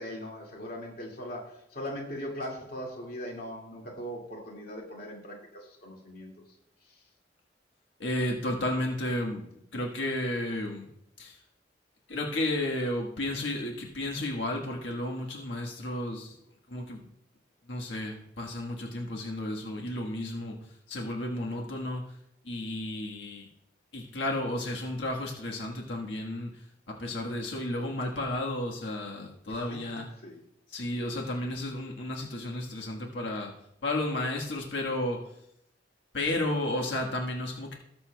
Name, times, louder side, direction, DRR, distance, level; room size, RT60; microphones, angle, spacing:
voice 1, 0.0-6.3 6.8-7.0 29.5-29.6 30.2-30.4, equal, 55° left, -1 dB, 2.2 m, -40 dB
voice 2, 8.0-9.4 9.7-10.9 11.2-11.4 12.1-16.4 16.7-17.0 17.7-22.2 22.4-23.5 23.9-26.7 27.0-30.1 30.7-33.5 33.8-35.4 36.1-37.7, left 1 dB, 90° left, 0 dB, 1.5 m, -32 dB
19.5 x 6.9 x 2.3 m, 0.77 s
head